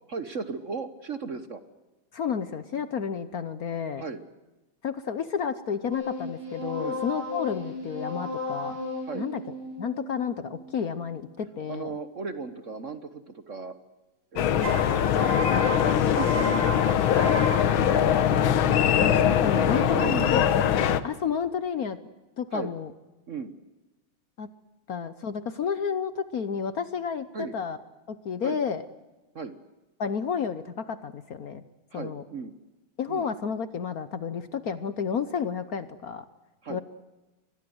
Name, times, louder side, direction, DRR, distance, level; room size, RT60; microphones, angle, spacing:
voice 1, 0.1-1.6 4.0-4.2 6.8-7.0 9.0-9.3 11.7-13.7 14.3-15.3 15.9-18.4 18.7-19.2 19.5-20.3 22.5-22.7 23.3-23.5 27.3-27.5 28.4-28.6 29.3-29.6 31.9-32.5 33.1-33.3 36.6-36.8, right 4 dB, 45° right, 11 dB, 1.2 m, -37 dB
voice 2, 2.1-4.0 4.8-8.8 9.1-9.4 9.8-11.9 19.0-20.4 21.0-22.0 22.4-22.9 24.4-24.5 24.9-27.8 28.1-28.8 30.0-31.6 31.9-32.2 33.0-36.2 36.7-36.8, left 7 dB, 55° left, 13 dB, 1.2 m, -31 dB
sound 1, 5.9-11.3 14.6-18.5, equal, 80° right, 6.3 m, -34 dB
sound 2, 14.4-21.0, left 9 dB, 75° left, 1.9 m, -22 dB
24.5 x 20.5 x 7.9 m, 1.1 s
omnidirectional pair, 2.3 m